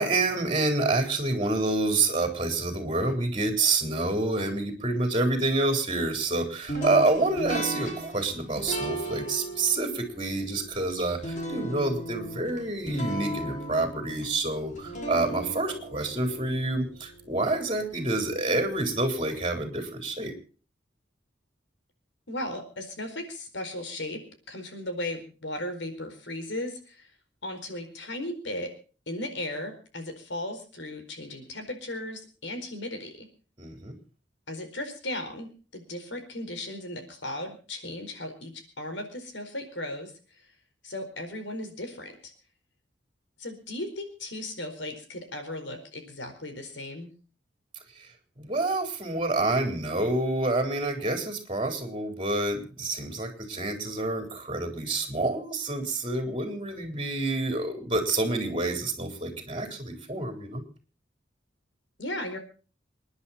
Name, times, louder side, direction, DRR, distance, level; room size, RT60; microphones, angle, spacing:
voice 1, 0.0-20.3 33.6-33.9 48.4-60.6, right 2 dB, 25° right, 5 dB, 3.9 m, -28 dB
sound 1, 6.7-17.7, right 1 dB, 40° left, 5.0 m, -36 dB
voice 2, 22.3-24.2 24.5-27.1 27.4-28.7 29.1-33.3 34.5-35.5 35.7-40.1 40.8-42.3 43.4-47.1 62.0-62.4, left 1 dB, 75° left, 6 dB, 4.5 m, -36 dB
27.5 x 10.5 x 4.2 m, 0.38 s
head